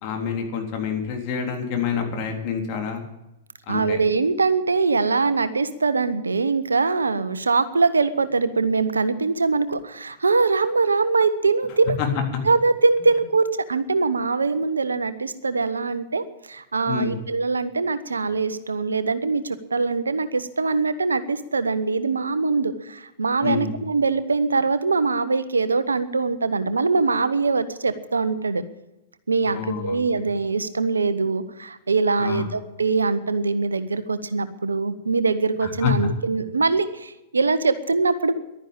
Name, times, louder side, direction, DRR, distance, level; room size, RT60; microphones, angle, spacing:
voice 1, 0.0-3.0 3.7-4.0 12.0-12.1 16.9-17.2 23.4-23.7 29.5-30.2 32.2-32.5 35.6-35.9, left 7 dB, 45° left, 3 dB, 3.5 m, -27 dB
voice 2, 3.7-12.0 12.4-28.6 29.3-38.3, right 4 dB, 90° right, 13 dB, 1.0 m, -22 dB
12.0 x 10.0 x 8.8 m, 0.92 s
hypercardioid pair, 105°, 0 cm